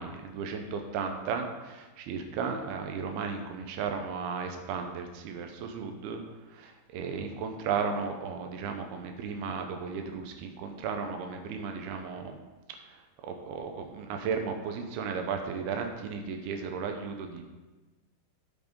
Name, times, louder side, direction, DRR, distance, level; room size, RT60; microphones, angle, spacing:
voice 1, 0.0-6.2 6.5-12.4 12.9-17.4, right 5 dB, 85° right, 5 dB, 2.3 m, -35 dB
8.7 x 6.0 x 5.2 m, 1.2 s
omnidirectional pair, 5.3 m